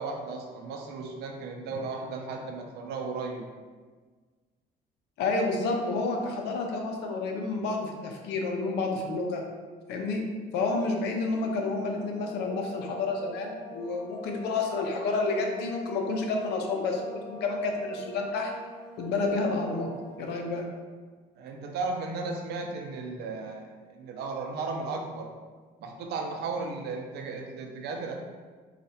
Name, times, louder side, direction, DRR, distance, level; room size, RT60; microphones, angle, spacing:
voice 1, 0.0-3.4 21.4-25.3 25.8-28.1, right 3 dB, 75° right, 3 dB, 0.6 m, -35 dB
voice 2, 5.2-9.4 9.9-10.2 10.5-18.5 19.0-19.9 20.2-20.6, left 3 dB, 80° left, 2 dB, 0.6 m, -30 dB
sound 1, 11.8-20.5, left 1 dB, 5° right, 1.1 m, -45 dB
4.2 x 2.4 x 2.7 m, 1.4 s
cardioid pair, 110°, 17 cm